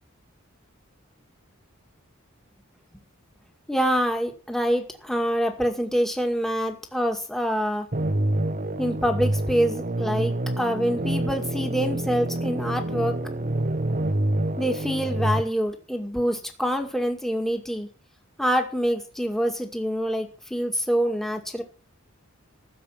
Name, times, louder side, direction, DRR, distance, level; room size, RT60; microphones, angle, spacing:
voice 1, 3.7-7.9 8.8-13.2 14.6-17.9 18.4-21.6, equal, ahead, 3 dB, 2.2 m, -26 dB
sound 1, 7.9-15.4, right 1 dB, 40° right, 1.2 m, -27 dB
15.5 x 7.5 x 7.3 m, 0.36 s
head